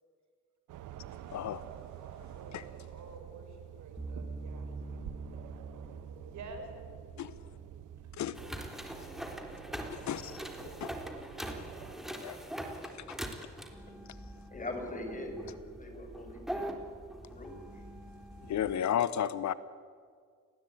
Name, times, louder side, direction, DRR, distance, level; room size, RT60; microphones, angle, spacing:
sound 1, 0.7-12.0, right 11 dB, 85° right, 1.3 m, -48 dB
voice 1, 1.3-1.6 2.5-2.6 7.2-7.3 8.2-8.4 9.9-10.4 10.8-10.9 12.1-12.4 12.9-13.2 18.5-19.5, left 10 dB, 65° left, 16 dB, 1.0 m, -33 dB
voice 2, 2.0-4.7 5.1-6.0 6.3-6.7 8.3-10.1, right 3 dB, 70° right, 5 dB, 5.8 m, -52 dB
sound 2, 4.0-9.1, right 3 dB, 15° right, 2.6 m, -45 dB
sound 3, 8.3-18.8, right 1 dB, ahead, 3.8 m, -43 dB
voice 3, 14.5-16.7 17.3-17.8, left 1 dB, 25° left, 5 dB, 6.7 m, -42 dB
29.0 x 20.0 x 9.1 m, 2.1 s
cardioid pair, 90°, 30 cm